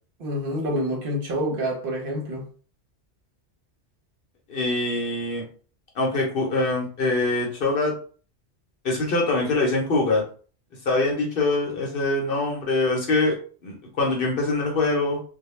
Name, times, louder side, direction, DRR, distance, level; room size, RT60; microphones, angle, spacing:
voice 1, 0.2-2.5, equal, 60° right, 0.8 m, -27 dB
voice 2, 4.5-5.4 5.9-7.9 8.8-10.2 10.9-13.3 13.6-15.2, left 2 dB, 60° left, 0.8 m, -23 dB
2.1 x 2.1 x 3.0 m
omnidirectional pair, 1.2 m